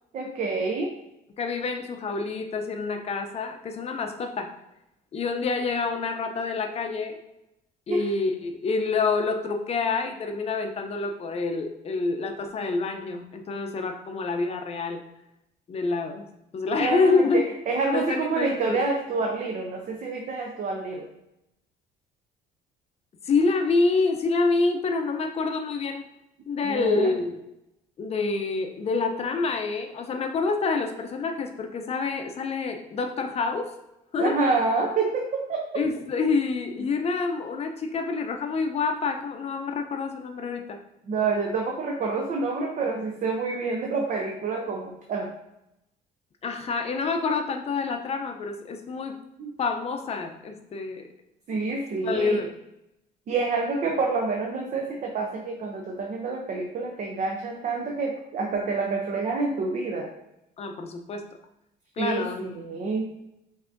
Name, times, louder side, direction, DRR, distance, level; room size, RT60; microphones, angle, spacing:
voice 1, 0.1-0.9 7.9-8.1 16.8-21.1 26.6-27.1 34.2-35.6 41.1-45.3 49.4-49.5 51.5-52.4 53.3-60.1 62.0-63.1, right 3 dB, 50° right, 1 dB, 0.6 m, -28 dB
voice 2, 1.4-4.5 5.1-7.2 7.9-15.0 15.7-16.3 16.5-17.5 17.9-18.8 23.2-26.0 26.5-27.3 28.0-33.7 34.1-34.4 35.7-40.8 46.4-49.2 49.6-51.1 52.0-52.5 60.6-61.3 62.0-62.6, left 4 dB, 35° left, 5 dB, 0.6 m, -27 dB
5.6 x 2.7 x 2.5 m, 0.87 s
cardioid pair, 110°, 17 cm